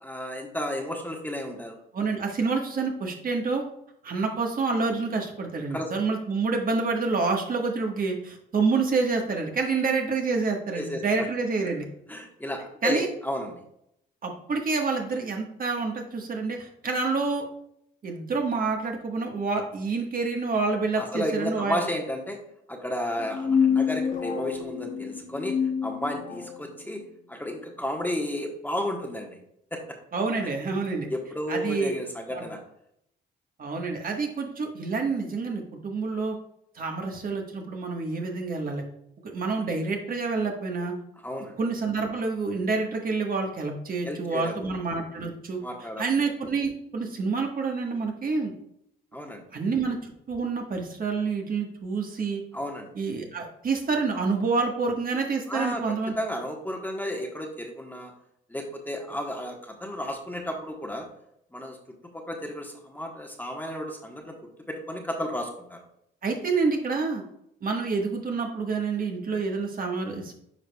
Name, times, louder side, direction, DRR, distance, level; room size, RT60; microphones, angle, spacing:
voice 1, 0.0-1.8 5.7-5.9 10.7-11.3 12.1-13.6 21.0-22.4 22.7-25.5 25.8-27.0 27.3-29.4 29.7-29.8 31.1-32.6 41.2-41.5 44.0-44.7 45.6-46.0 49.1-49.4 52.5-52.9 55.5-58.1 58.5-61.1 61.5-61.8 62.1-65.8, left 1 dB, 10° left, 2 dB, 1.2 m, -32 dB
voice 2, 1.9-3.6 4.0-11.9 12.8-13.1 14.2-17.4 18.0-21.8 30.1-31.1 31.5-31.9 32.3-32.4 33.6-36.4 36.7-38.8 39.2-40.9 41.6-45.6 46.0-48.5 49.5-52.4 52.9-56.1 66.2-67.2 67.6-70.3, right 4 dB, 45° right, 2 dB, 1.4 m, -28 dB
sound 1, 23.2-26.6, left 7 dB, 40° left, 1.1 m, -27 dB
9.5 x 4.9 x 2.3 m, 0.74 s
cardioid pair, 90°, 20 cm